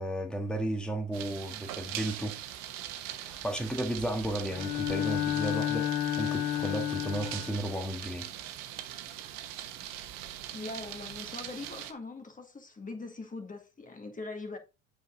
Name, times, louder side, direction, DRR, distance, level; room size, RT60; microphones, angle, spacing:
voice 1, 0.0-2.4 3.2-8.3, right 1 dB, ahead, 1.7 m, -34 dB
sound 1, 1.1-11.9, right 11 dB, 70° right, 1.2 m, -41 dB
Bowed string instrument, 4.5-7.6, left 12 dB, 75° left, 1.3 m, -31 dB
voice 2, 10.5-14.6, left 3 dB, 25° left, 1.9 m, -41 dB
8.0 x 4.9 x 3.8 m
hypercardioid pair, 70°, 35 cm